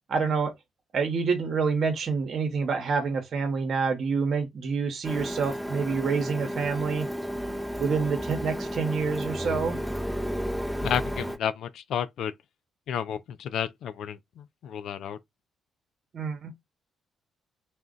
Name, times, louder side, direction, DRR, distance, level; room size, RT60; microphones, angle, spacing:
voice 1, 0.1-0.5 0.9-7.1 7.8-9.8 16.1-16.5, right 5 dB, 60° right, 0.9 m, -27 dB
Printer, 5.0-11.4, equal, 5° left, 0.6 m, -32 dB
voice 2, 10.8-12.3 12.9-15.2, left 8 dB, 75° left, 0.4 m, -31 dB
2.5 x 2.2 x 3.7 m
supercardioid pair, 60°, 0 cm